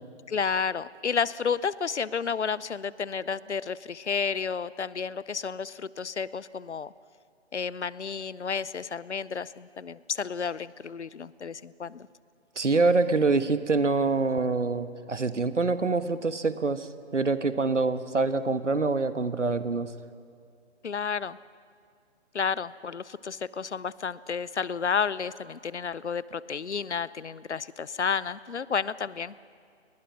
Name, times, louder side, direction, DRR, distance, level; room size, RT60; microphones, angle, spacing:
voice 1, 0.3-6.9 7.5-12.1 20.8-21.4 22.3-29.3, left 6 dB, 70° left, 20 dB, 0.8 m, -31 dB
voice 2, 12.6-19.9, right 3 dB, 80° right, 12 dB, 1.4 m, -25 dB
29.0 x 20.5 x 6.2 m, 2.3 s
figure-of-eight pair, 140°, 36 cm